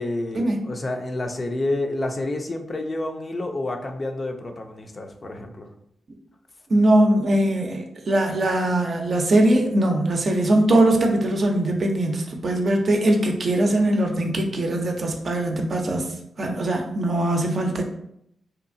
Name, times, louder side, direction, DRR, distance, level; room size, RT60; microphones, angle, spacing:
voice 1, 0.0-5.7, left 2 dB, 40° left, 4 dB, 0.4 m, -29 dB
voice 2, 6.7-16.1 16.4-17.9, right 1 dB, 55° right, 2 dB, 0.5 m, -21 dB
2.8 x 2.3 x 2.6 m, 0.73 s
supercardioid pair, 45°, 0 cm